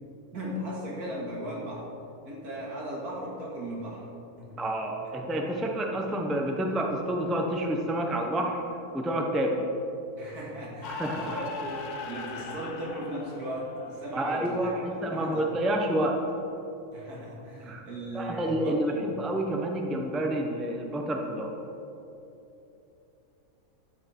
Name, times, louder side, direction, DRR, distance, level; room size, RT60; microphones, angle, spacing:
voice 1, 0.3-1.9 2.2-4.1 4.4-4.6 10.2-15.5 16.9-19.1, equal, 80° right, -5 dB, 2.6 m, -37 dB
voice 2, 4.6-8.6 8.9-9.7 10.9-11.4 14.1-16.2 17.6-17.8 18.1-18.9 19.2-21.5, right 1 dB, ahead, 2 dB, 0.5 m, -29 dB
sound 1, 10.8-16.4, left 3 dB, 85° left, 1.5 m, -41 dB
12.0 x 7.7 x 4.4 m, 2.9 s
omnidirectional pair, 1.6 m